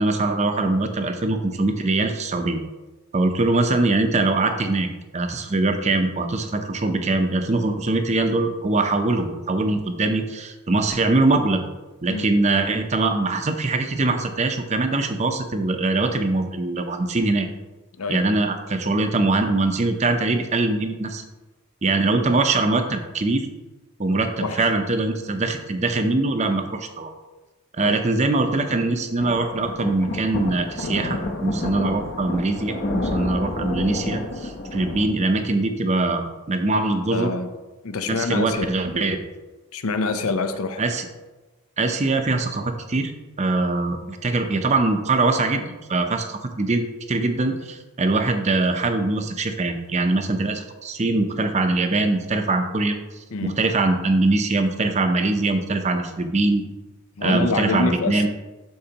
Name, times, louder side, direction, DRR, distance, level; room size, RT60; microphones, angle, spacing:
voice 1, 0.0-2.6 3.1-4.9 5.1-11.6 12.0-17.5 18.1-21.2 21.8-23.5 24.0-27.1 27.8-36.2 36.5-37.3 38.0-39.2 40.8-41.1 41.8-43.1 43.4-53.0 53.4-56.6 57.2-58.3, right 2 dB, 30° right, 6 dB, 0.6 m, -22 dB
voice 2, 24.4-24.7 27.8-28.0 37.1-37.5 37.8-38.7 39.7-40.8 53.3-53.6 57.2-58.3, left 3 dB, 75° left, 9 dB, 0.6 m, -26 dB
sound 1, 29.2-35.1, left 2 dB, 50° left, 0.9 m, -29 dB
12.0 x 4.5 x 2.9 m, 1.1 s
head